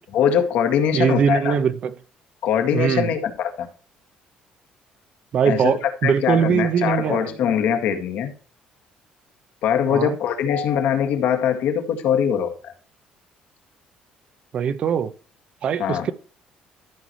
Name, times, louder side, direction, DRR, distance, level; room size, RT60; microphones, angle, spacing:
voice 1, 0.0-1.6 2.4-3.7 5.5-5.7 6.0-8.3 9.6-12.7 15.8-16.1, left 8 dB, 70° left, 2.0 m, -22 dB
voice 2, 0.9-1.9 2.7-3.1 5.3-7.3 9.9-10.2 14.5-15.1 15.6-16.1, right 7 dB, 40° right, 0.6 m, -21 dB
13.5 x 6.2 x 3.1 m
cardioid pair, 175°, 3 cm